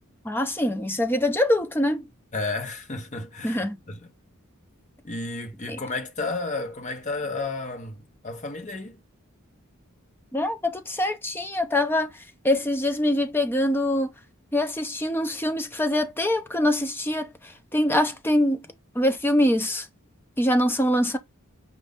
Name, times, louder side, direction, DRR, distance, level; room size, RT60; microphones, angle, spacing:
voice 1, 0.2-2.1 3.4-3.8 5.7-5.8 10.3-12.1 12.4-14.1 14.5-18.6 18.9-19.9 20.4-21.2, left 1 dB, 10° left, 0.6 m, -24 dB
voice 2, 2.3-4.1 5.0-9.0, left 3 dB, 35° left, 1.1 m, -32 dB
5.2 x 2.6 x 3.5 m
head